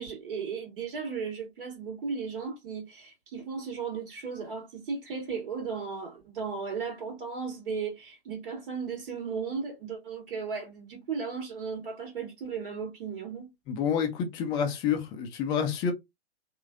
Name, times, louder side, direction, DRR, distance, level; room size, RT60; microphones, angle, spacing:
voice 1, 0.0-13.5, right 5 dB, 55° right, 1.5 m, -35 dB
voice 2, 13.7-15.9, left 7 dB, 15° left, 0.3 m, -28 dB
3.1 x 2.5 x 2.4 m
figure-of-eight pair, 115°, 33 cm